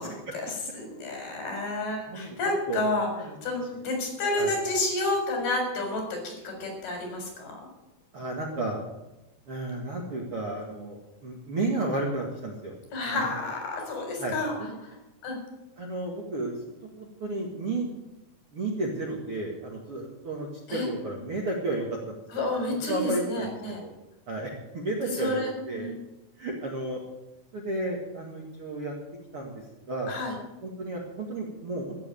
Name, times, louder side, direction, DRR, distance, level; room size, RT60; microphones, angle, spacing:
voice 1, 0.0-3.1 3.4-7.7 12.9-14.5 14.8-14.9 15.2-15.4 20.7-20.9 22.3-23.8 25.1-26.0 30.1-30.3, left 2 dB, 60° left, 2 dB, 6.0 m, -30 dB
voice 2, 8.1-8.8 9.5-12.7 13.1-13.3 14.2-14.8 15.8-16.6 17.0-17.9 18.5-22.5 22.9-23.5 23.8-23.9 24.3-25.4 25.7-25.9 26.4-27.0 27.5-28.9 29.3-29.5 29.9-30.1 30.6-32.0, right 2 dB, 45° right, -2 dB, 2.0 m, -32 dB
14.5 x 7.8 x 9.2 m, 0.99 s
omnidirectional pair, 4.9 m